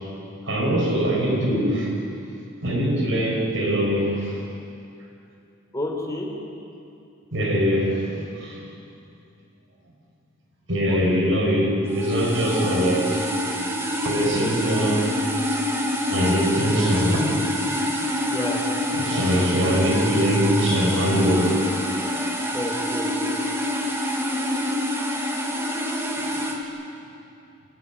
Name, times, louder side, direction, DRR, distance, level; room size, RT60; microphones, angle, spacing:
voice 1, 0.5-1.9 2.6-4.4 7.3-8.7 10.7-13.2 14.0-15.1 16.1-17.4 18.9-21.6, equal, 70° right, -1 dB, 7.1 m, -22 dB
voice 2, 5.7-6.3 10.9-11.4 18.3-18.6 22.5-23.4, left 1 dB, 15° left, 0 dB, 4.1 m, -31 dB
sound 1, 11.9-26.6, left 1 dB, 15° right, 2.2 m, -26 dB
26.5 x 15.5 x 10.0 m, 2.6 s
head